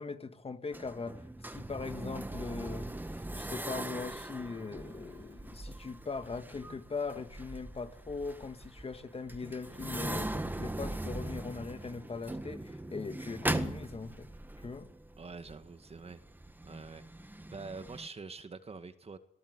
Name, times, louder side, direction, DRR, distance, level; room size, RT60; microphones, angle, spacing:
voice 1, 0.0-3.0 3.4-14.3 14.6-14.9, left 4 dB, 30° left, 1.8 m, -40 dB
sound 1, 0.7-18.1, right 1 dB, 10° right, 1.7 m, -40 dB
voice 2, 15.2-16.2 16.6-17.0 17.5-19.2, right 4 dB, 30° right, 1.9 m, -45 dB
27.0 x 18.5 x 8.2 m
cardioid pair, 90°, 20 cm